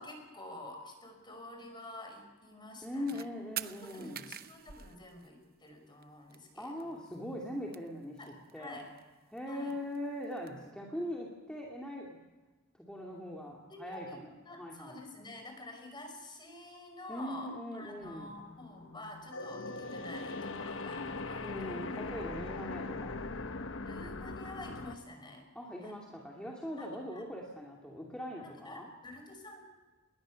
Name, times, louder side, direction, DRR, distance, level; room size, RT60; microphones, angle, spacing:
voice 1, 0.0-3.2 3.6-7.0 8.2-8.8 9.5-9.8 13.5-21.8 23.8-25.4 25.8-26.0 26.8-27.2 28.4-29.6, left 2 dB, 20° left, 4 dB, 5.7 m, -49 dB
voice 2, 2.8-4.2 6.6-8.9 9.3-12.2 12.7-14.2 14.6-15.0 17.1-18.3 21.4-23.2 25.5-28.9, left 1 dB, 5° left, -3 dB, 2.6 m, -41 dB
sound 1, 3.1-3.3 3.6-5.7 6.0-6.1 6.3-6.4 6.6-7.1 7.4-8.6 9.0-10.5, right 11 dB, 45° right, 0.7 m, -44 dB
sound 2, 18.0-24.9, left 3 dB, 60° left, 1.0 m, -41 dB
27.5 x 21.0 x 6.5 m, 1.2 s
head